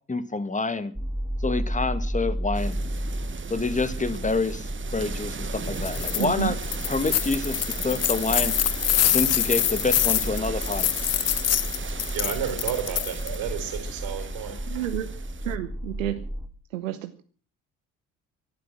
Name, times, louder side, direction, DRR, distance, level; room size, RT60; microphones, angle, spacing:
voice 1, 0.1-0.9 1.4-2.8 3.5-6.6 6.9-8.5 9.1-10.9, left 3 dB, 20° left, 13 dB, 1.9 m, -27 dB
sound 1, 0.9-16.5, equal, 5° right, 2.5 m, -33 dB
sound 2, 2.5-15.6, right 6 dB, 30° right, 1.4 m, -38 dB
sound 3, 5.7-6.3 6.6-13.3, left 11 dB, 40° left, 0.8 m, -25 dB
voice 2, 6.2-6.5 14.7-15.1 15.4-16.2 16.7-17.1, right 14 dB, 80° right, 9 dB, 0.9 m, -30 dB
voice 3, 12.1-14.9, right 9 dB, 65° right, 9 dB, 4.2 m, -32 dB
17.5 x 12.0 x 6.1 m, 0.43 s
figure-of-eight pair, 50°, 38 cm